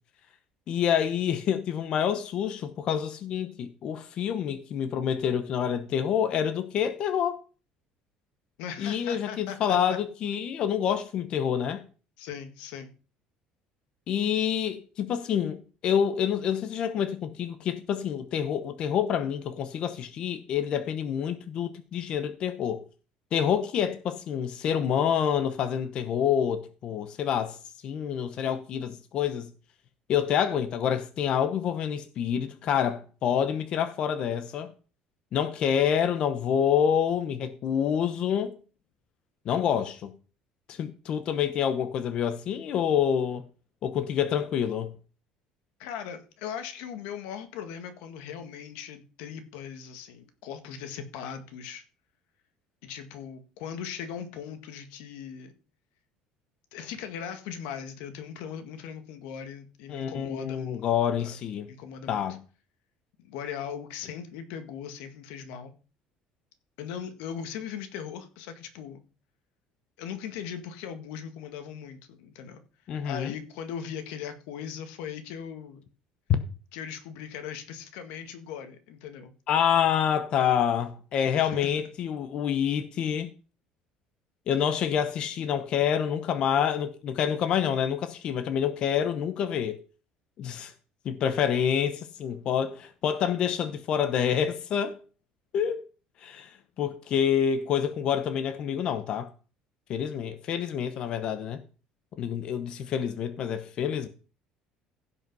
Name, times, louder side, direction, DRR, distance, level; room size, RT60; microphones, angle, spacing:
voice 1, 0.7-7.4 8.8-11.8 14.1-22.8 23.3-27.6 27.8-29.5 30.1-34.7 35.3-38.5 39.5-40.1 40.7-43.4 43.8-44.9 59.9-61.7 62.1-62.4 72.9-73.3 79.5-83.3 84.5-89.8 90.4-90.7 91.0-95.0 95.5-95.8 96.2-99.3 99.9-101.6 102.2-104.1, left 8 dB, 40° left, 0.9 m, -27 dB
voice 2, 8.6-10.0 12.2-12.9 45.8-51.9 52.8-55.5 56.7-60.8 61.2-61.4 61.7-62.3 63.2-65.7 66.8-69.0 70.0-72.6 73.0-75.8 76.7-79.3 81.3-81.7, left 8 dB, 90° left, 1.8 m, -39 dB
16.0 x 5.5 x 5.4 m
cardioid pair, 180°, 3 cm